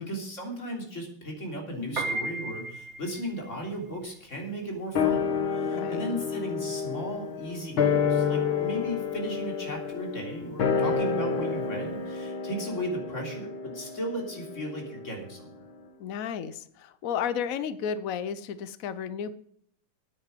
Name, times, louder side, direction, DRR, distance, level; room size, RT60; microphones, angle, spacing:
voice 1, 0.0-15.5, equal, 35° left, 1 dB, 3.6 m, -36 dB
Piano, 1.8-12.2, right 3 dB, 35° right, 1.6 m, -39 dB
sound 1, 5.0-15.6 15.8-15.9, left 6 dB, 65° left, 2.2 m, -29 dB
voice 2, 5.6-6.0 16.0-19.3, left 7 dB, 85° left, 14 dB, 0.7 m, -33 dB
9.6 x 9.2 x 7.6 m, 0.66 s
omnidirectional pair, 2.4 m